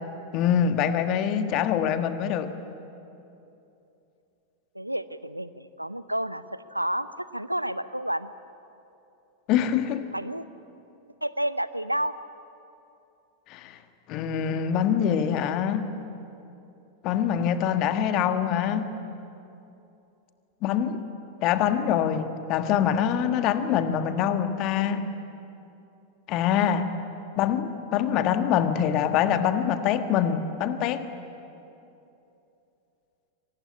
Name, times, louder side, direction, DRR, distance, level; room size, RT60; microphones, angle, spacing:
voice 1, 0.3-2.5 9.5-10.1 13.5-13.8 14.1-15.9 17.0-18.9 20.6-21.0 21.4-25.0 26.3-26.9 27.4-31.0, left 9 dB, 40° left, 9 dB, 1.5 m, -24 dB
voice 2, 4.7-7.1 7.3-8.3 10.1-10.5 11.2-12.1, right 1 dB, 90° right, 15 dB, 0.7 m, -30 dB
25.0 x 19.5 x 9.9 m, 2.8 s
figure-of-eight pair, 90°, 0 cm